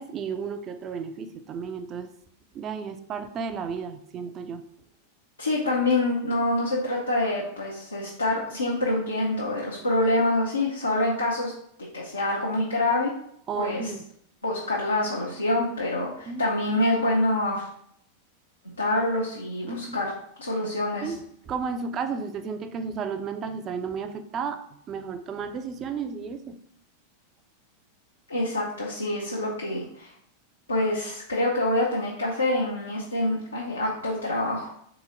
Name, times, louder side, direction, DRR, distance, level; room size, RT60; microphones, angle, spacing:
voice 1, 0.0-2.1 2.5-4.6 13.5-14.0 16.3-16.4 19.6-20.0 21.0-24.6 24.9-26.6, right 5 dB, 30° right, 9 dB, 0.4 m, -33 dB
voice 2, 5.4-11.5 11.9-13.1 13.5-13.9 14.4-17.7 18.8-20.1 20.4-21.1 28.3-30.1 30.7-34.7, left 1 dB, 80° left, -4 dB, 0.7 m, -26 dB
3.9 x 2.9 x 3.8 m, 0.69 s
figure-of-eight pair, 90°, 0 cm